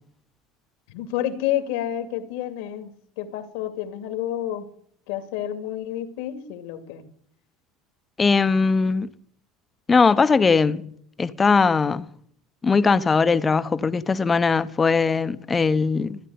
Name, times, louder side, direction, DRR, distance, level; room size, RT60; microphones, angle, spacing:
voice 1, 0.9-2.9 3.2-4.7 5.1-7.0, left 11 dB, 80° left, 2.3 m, -29 dB
voice 2, 8.2-9.1 9.9-10.9 11.2-12.1 12.6-16.2, left 4 dB, 20° left, 0.9 m, -20 dB
15.0 x 9.9 x 9.5 m
supercardioid pair, 110°, 0 cm